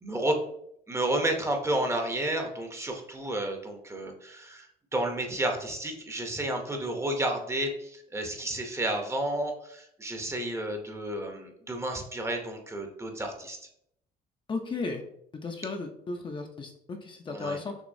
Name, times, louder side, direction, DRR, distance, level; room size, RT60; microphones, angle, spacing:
voice 1, 0.0-0.4 0.9-13.6 17.3-17.6, right 1 dB, 15° right, 3 dB, 0.7 m, -31 dB
voice 2, 14.5-15.0 15.4-17.8, left 3 dB, 30° left, 3 dB, 0.5 m, -35 dB
6.2 x 3.0 x 2.6 m, 0.74 s
cardioid pair, 110°, 17 cm